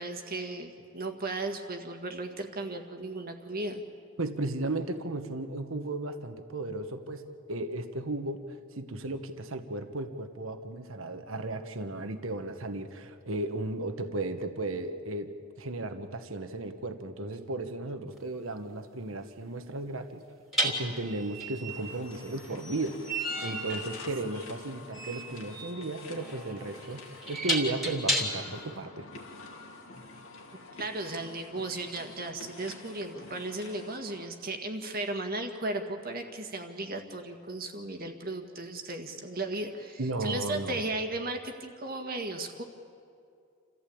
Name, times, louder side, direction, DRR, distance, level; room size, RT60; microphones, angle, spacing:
voice 1, 0.0-3.8 30.7-42.6, right 2 dB, 45° right, 4 dB, 1.7 m, -36 dB
voice 2, 4.2-7.2 7.5-15.3 15.6-20.2 20.6-27.0 27.3-29.1 40.0-40.8, right 2 dB, 70° right, 8 dB, 1.4 m, -35 dB
sound 1, 18.1-18.3 20.5-28.6, right 1 dB, ahead, 3.0 m, -33 dB
sound 2, 21.7-34.3, left 3 dB, 75° left, 2.6 m, -48 dB
28.5 x 15.0 x 8.7 m, 2.4 s
head